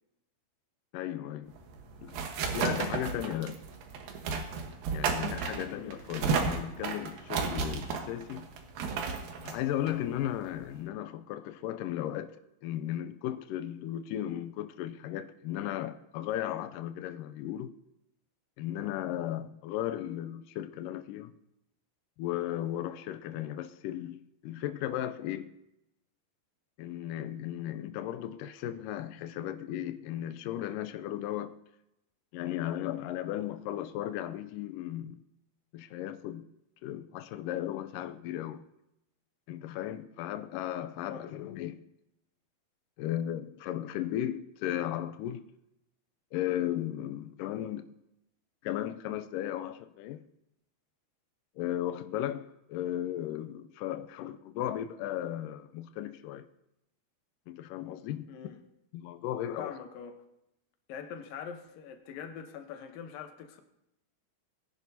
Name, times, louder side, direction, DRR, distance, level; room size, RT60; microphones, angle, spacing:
voice 1, 0.9-1.5 2.0-2.2 2.5-3.6 4.9-8.5 9.4-17.8 18.6-21.3 22.2-25.5 26.8-31.6 32.3-35.2 35.7-36.5 36.8-38.6 39.5-41.8 43.0-45.4 46.3-47.9 48.6-50.2 51.6-56.5 57.5-58.3 58.9-59.8, left 12 dB, 90° left, 1.9 m, -35 dB
sound 1, 1.5-10.8, right 5 dB, 75° right, 2.9 m, -34 dB
voice 2, 5.6-5.9 41.0-41.3 58.3-58.6 59.6-60.2 60.9-63.6, left 7 dB, 70° left, 2.6 m, -43 dB
20.0 x 10.5 x 2.8 m
omnidirectional pair, 4.4 m